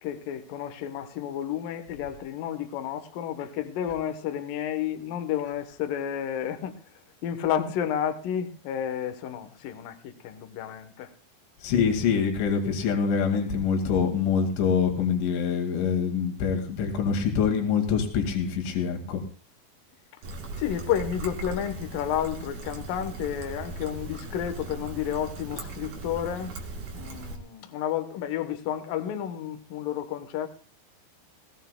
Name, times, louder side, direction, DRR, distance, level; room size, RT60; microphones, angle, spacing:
voice 1, 0.0-6.8 7.2-11.1 20.6-26.6 26.9-30.5, left 9 dB, 70° left, 2.2 m, -31 dB
voice 2, 11.6-19.2, left 6 dB, 85° left, 4.5 m, -25 dB
Trickle dribble, 20.2-27.4, right 3 dB, 50° right, 3.4 m, -38 dB
21.5 x 17.5 x 2.2 m
omnidirectional pair, 5.2 m